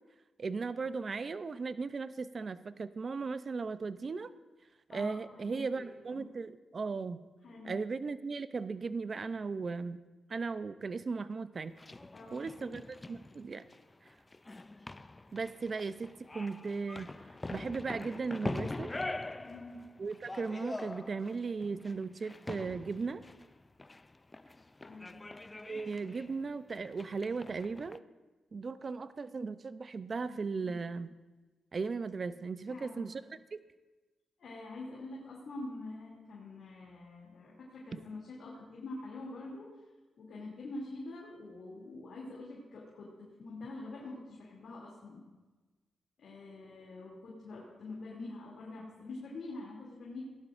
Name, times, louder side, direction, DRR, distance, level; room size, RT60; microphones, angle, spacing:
voice 1, 0.4-4.3 4.9-7.2 7.6-10.0 10.3-11.8 12.3-13.6 15.3-18.9 20.0-23.2 25.6-28.0 28.5-31.1 31.7-33.6 37.9-38.0, right 4 dB, 45° right, 13 dB, 0.5 m, -37 dB
voice 2, 4.9-5.9 6.1-6.3 7.4-7.7 12.1-12.8 19.4-19.8 24.8-25.2 30.2-30.7 32.7-33.1 34.4-39.7 40.2-45.2 46.2-50.2, left 2 dB, 65° left, -4 dB, 2.7 m, -45 dB
sound 1, 11.6-28.0, left 2 dB, 20° left, 0.3 m, -44 dB
17.5 x 11.5 x 2.5 m, 1.2 s
cardioid pair, 85°, 0 cm